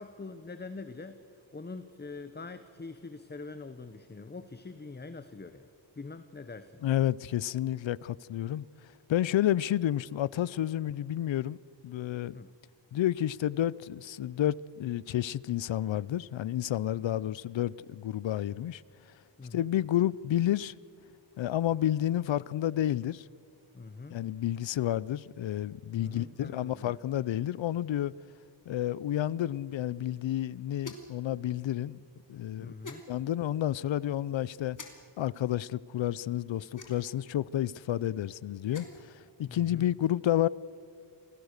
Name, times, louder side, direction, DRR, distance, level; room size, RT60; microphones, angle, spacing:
voice 1, 0.0-5.7 6.0-6.8 12.3-12.5 19.4-19.7 23.7-24.2 26.0-26.9 32.6-33.0 39.5-39.9, left 3 dB, 20° left, 0.9 m, -44 dB
voice 2, 6.8-8.6 9.1-11.6 11.8-12.4 12.9-18.8 19.5-20.7 21.4-23.2 24.1-28.1 28.7-32.0 32.3-32.7 33.1-34.8 35.2-39.1 39.4-40.5, left 12 dB, 70° left, 0.6 m, -30 dB
sound 1, 30.8-31.2 32.8-33.0 34.7-34.9 36.7-37.2 38.5-39.1, left 2 dB, 40° left, 2.9 m, -45 dB
27.5 x 19.0 x 6.6 m
wide cardioid pair, 100°, 47 cm